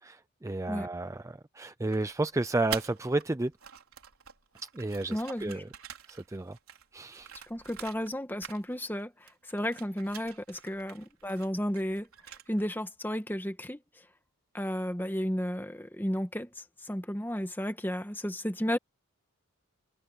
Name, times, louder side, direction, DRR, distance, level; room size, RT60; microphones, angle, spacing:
voice 1, 0.0-3.5 4.6-5.7 6.1-6.6 6.9-7.4, right 2 dB, 15° right, 0.4 m, -32 dB
sound 1, 1.9-3.2 3.5-8.1 8.4-9.0 9.3-12.7, right 8 dB, 70° right, 4.2 m, -45 dB
voice 2, 5.1-5.5 7.5-12.1 12.5-13.8 14.5-18.8, equal, 10° left, 1.5 m, -33 dB
head